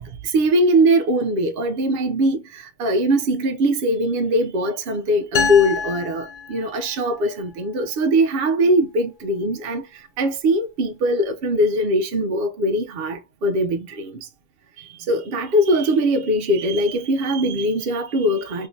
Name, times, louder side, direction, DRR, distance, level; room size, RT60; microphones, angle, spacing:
voice 1, 0.0-9.8 10.2-14.3 15.1-18.7, equal, 60° right, 0.7 m, -21 dB
sound 1, 5.3-7.1, left 5 dB, 50° left, 0.6 m, -26 dB
3.3 x 2.8 x 2.6 m
omnidirectional pair, 1.3 m